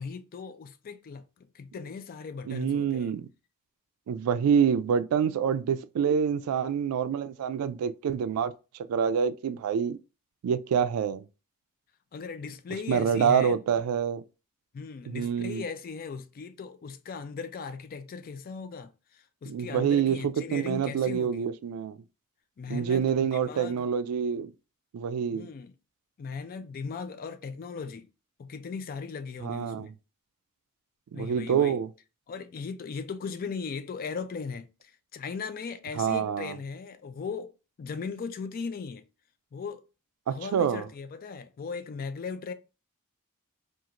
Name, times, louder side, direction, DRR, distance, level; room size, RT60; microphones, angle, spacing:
voice 1, 0.0-3.1 12.1-13.6 14.7-21.5 22.6-23.9 25.3-25.7 26.2-28.1 28.4-29.9 31.1-31.8 32.3-37.5 37.8-39.0 39.5-39.8 40.3-42.5, left 5 dB, 40° left, 0.3 m, -38 dB
voice 2, 2.5-3.3 4.1-8.5 8.9-10.0 10.4-11.3 12.9-14.2 15.1-15.6 19.5-22.0 22.7-24.5 24.9-25.5 29.4-29.9 31.1-31.9 36.0-36.5 40.3-40.9, right 7 dB, 85° right, 0.3 m, -27 dB
2.9 x 2.4 x 2.4 m
head